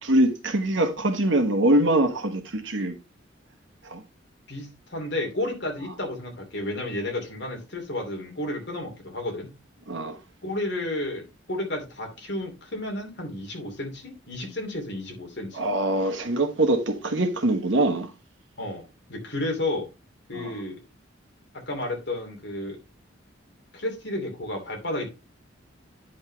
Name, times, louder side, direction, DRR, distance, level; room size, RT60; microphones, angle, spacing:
voice 1, 0.0-3.0 3.8-4.0 9.9-10.2 15.5-18.1 20.3-20.5, right 1 dB, 65° right, 1.4 m, -23 dB
voice 2, 4.5-9.5 10.4-15.6 18.6-18.8 19.1-19.9 20.3-20.8 21.7-22.8 23.7-25.1, left 1 dB, 55° left, 2.8 m, -32 dB
9.8 x 5.7 x 3.3 m
head